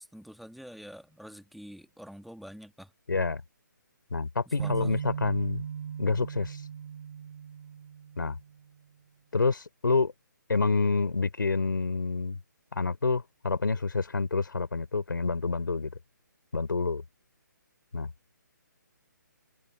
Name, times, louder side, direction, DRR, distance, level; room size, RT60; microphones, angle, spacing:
voice 1, 0.0-2.9 4.5-5.0, equal, ahead, 1.7 m, -47 dB
voice 2, 3.1-3.4 4.1-5.6 6.0-6.6 8.2-8.4 9.3-10.1 10.5-12.4 12.7-15.9 16.5-17.0 17.9-18.1, left 4 dB, 85° left, 3.9 m, -28 dB
sound 1, 4.6-8.6, right 8 dB, 55° right, 6.1 m, -37 dB
hypercardioid pair, 150°, 11 cm